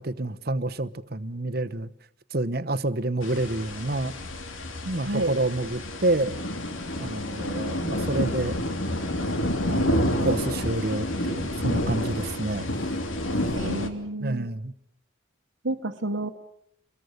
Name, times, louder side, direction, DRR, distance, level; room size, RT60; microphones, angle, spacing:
voice 1, 0.0-1.9 2.3-4.1 4.8-6.4 7.0-8.6 9.7-12.7 14.2-14.7, right 2 dB, 50° right, 12 dB, 1.0 m, -28 dB
sound 1, 3.2-13.9, left 1 dB, 85° left, 3.1 m, -29 dB
voice 2, 5.0-5.3 13.5-14.5 15.6-16.3, right 2 dB, 80° right, 1 dB, 1.4 m, -30 dB
28.5 x 22.5 x 6.7 m, 0.72 s
head